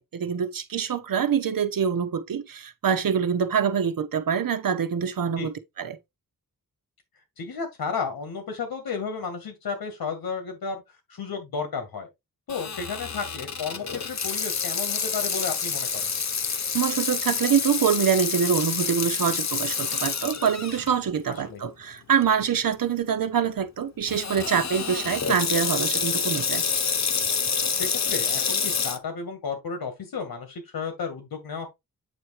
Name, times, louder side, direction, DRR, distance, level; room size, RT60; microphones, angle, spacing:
voice 1, 0.0-6.0 16.7-26.6, right 7 dB, 65° right, 1.1 m, -25 dB
voice 2, 7.4-12.1 12.5-16.1 21.3-21.6 27.7-31.7, left 5 dB, 85° left, 2.1 m, -33 dB
Water tap faucet / Sink (filling or washing), 12.5-20.9 21.4-21.5 22.2-22.5 24.1-29.0, left 6 dB, 50° left, 1.1 m, -28 dB
8.5 x 3.0 x 4.9 m
wide cardioid pair, 125°, 36 cm